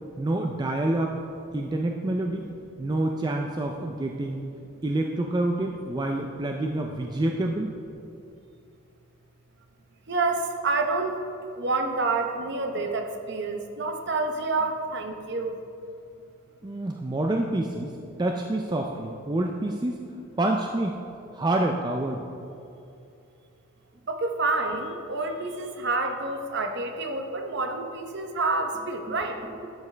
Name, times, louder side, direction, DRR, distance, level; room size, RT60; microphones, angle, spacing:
voice 1, 0.2-1.2 1.5-2.5 2.8-4.4 4.8-7.7 16.6-17.9 18.2-20.1 20.3-21.0 21.3-22.2 29.1-29.2 29.6-29.7, right 1 dB, 20° right, 2 dB, 0.3 m, -27 dB
voice 2, 10.1-11.2 11.6-15.5 24.1-29.4, right 3 dB, 50° right, 5 dB, 0.8 m, -28 dB
12.0 x 7.1 x 3.3 m, 2.6 s
head